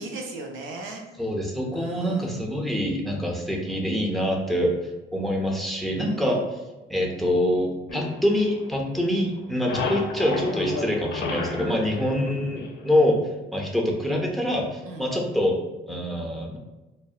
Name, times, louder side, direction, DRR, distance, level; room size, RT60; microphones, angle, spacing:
voice 1, 0.0-1.0 1.7-2.3 5.9-6.4 11.8-12.0 14.8-15.2, right 2 dB, 80° right, 1 dB, 0.5 m, -37 dB
voice 2, 1.2-4.7 5.1-6.4 6.9-13.2 13.5-15.6 15.9-16.6, left 1 dB, ahead, -1 dB, 0.4 m, -25 dB
sound 1, 7.9-9.0 9.3-13.0, left 3 dB, 65° left, 0.5 m, -32 dB
2.6 x 2.0 x 2.3 m, 1.1 s
cardioid pair, 90°, 20 cm